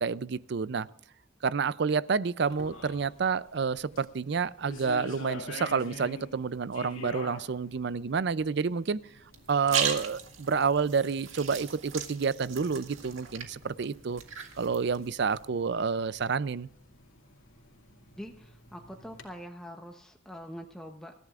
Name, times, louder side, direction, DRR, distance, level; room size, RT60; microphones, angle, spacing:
voice 1, 0.0-0.9 1.4-9.0 9.5-14.2 14.6-16.7, right 5 dB, 55° right, 18 dB, 0.5 m, -29 dB
sound 1, 2.5-19.3, left 2 dB, 85° left, 2.5 m, -48 dB
sound 2, 9.3-15.5, right 8 dB, 80° right, 1.9 m, -37 dB
voice 2, 18.2-21.1, equal, 5° left, 2 dB, 0.9 m, -44 dB
25.5 x 14.0 x 2.5 m, 0.69 s
head